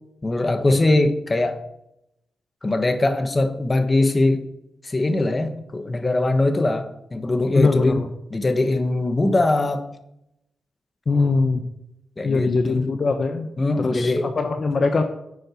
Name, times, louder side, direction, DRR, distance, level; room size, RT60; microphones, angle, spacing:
voice 1, 0.2-1.6 2.6-4.4 4.8-8.0 8.3-9.9 12.2-12.8 13.6-14.3, left 2 dB, 25° left, 7 dB, 1.3 m, -21 dB
voice 2, 7.5-8.1 11.1-11.6 12.2-13.5 13.8-15.0, left 3 dB, 40° left, 6 dB, 1.0 m, -21 dB
10.5 x 7.6 x 6.3 m, 0.81 s
wide cardioid pair, 135°, 0 cm